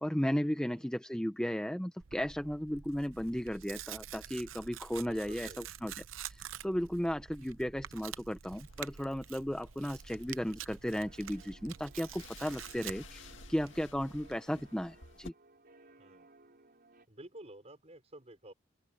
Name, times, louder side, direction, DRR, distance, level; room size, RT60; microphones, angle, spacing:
voice 1, 0.0-5.9 6.2-15.3, equal, 5° left, 0.7 m, -35 dB
voice 2, 0.7-1.0 5.0-5.7 16.0-16.3 17.1-18.5, right 1 dB, 35° right, 5.5 m, -52 dB
Tearing, 2.0-14.4, right 9 dB, 85° right, 0.7 m, -48 dB
sound 1, 8.7-15.3, left 4 dB, 70° left, 2.3 m, -56 dB
sound 2, 11.0-17.1, right 2 dB, 50° right, 4.8 m, -61 dB
open air
head